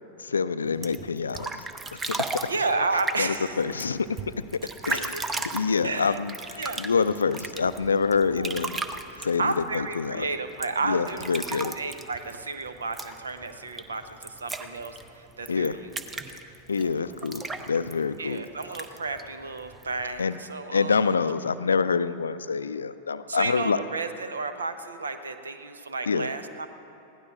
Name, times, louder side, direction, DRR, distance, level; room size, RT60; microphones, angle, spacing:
voice 1, 0.2-1.6 1.9-2.5 3.2-5.1 5.5-8.8 9.2-10.3 10.8-11.7 15.5-15.8 16.7-18.4 20.2-20.4 20.7-23.8 26.1-26.3, left 5 dB, 75° left, 14 dB, 0.4 m, -26 dB
sound 1, 0.7-20.3, right 3 dB, 15° right, 0.7 m, -37 dB
voice 2, 2.5-3.6 4.8-5.2 5.8-6.2 6.6-6.8 8.4-8.5 9.1-15.9 18.2-21.0 23.3-26.7, right 3 dB, 75° right, 9 dB, 0.8 m, -32 dB
21.5 x 16.5 x 2.4 m, 3.0 s
figure-of-eight pair, 90°, 0 cm